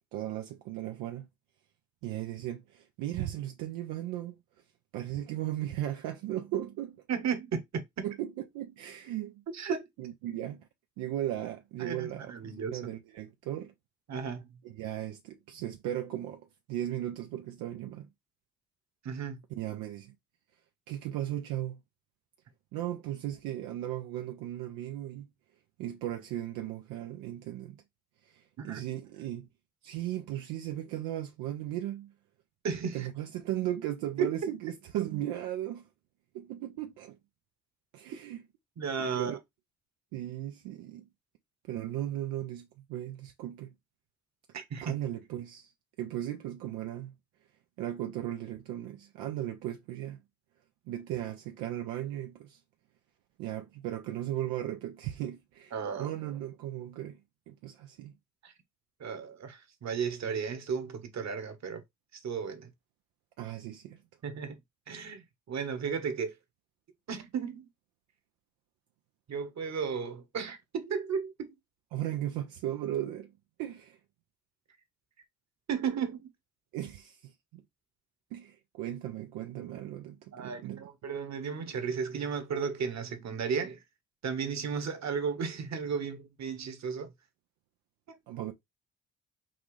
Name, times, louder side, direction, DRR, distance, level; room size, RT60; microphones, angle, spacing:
voice 1, 0.1-1.3 2.0-4.4 4.9-7.0 8.0-9.4 10.0-10.7 11.0-12.3 12.6-13.7 14.6-18.1 19.5-20.1 20.9-21.8 22.7-25.3 25.8-27.8 28.3-29.5 29.8-32.1 32.9-35.8 36.3-37.2 37.9-38.4 39.0-39.4 40.1-41.0 41.7-43.7 44.8-45.7 46.0-47.1 47.8-50.2 50.9-52.6 53.4-55.7 56.0-57.2 57.5-58.1 63.4-64.0 71.9-73.3 73.6-74.0 76.7-77.6 78.3-80.8 88.3-88.5, right 12 dB, 85° right, 0.6 m, -36 dB
voice 2, 7.1-8.0 9.5-9.9 11.8-12.8 14.1-14.5 19.0-19.4 28.6-28.8 32.6-33.1 34.2-34.3 38.8-39.4 44.5-44.9 55.7-56.1 58.4-58.5 59.0-61.8 62.1-62.7 64.2-64.6 64.9-66.3 67.1-67.7 69.3-71.5 75.7-76.3 80.3-83.8 84.2-87.1 88.1-88.2, right 6 dB, 55° right, 1.3 m, -34 dB
5.8 x 2.4 x 3.2 m
hypercardioid pair, 50°, 32 cm